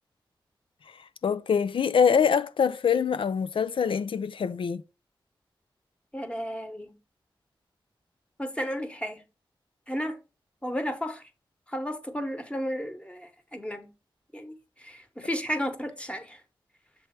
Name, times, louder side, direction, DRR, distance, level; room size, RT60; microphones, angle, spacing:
voice 1, 1.2-4.8, left 7 dB, 80° left, 0.4 m, -24 dB
voice 2, 6.1-6.9 8.4-9.2 9.9-10.2 10.6-11.2 11.7-13.9 14.3-14.5 14.8-16.4, equal, 10° left, 1.1 m, -33 dB
6.9 x 3.3 x 4.3 m
wide cardioid pair, 70°, 9 cm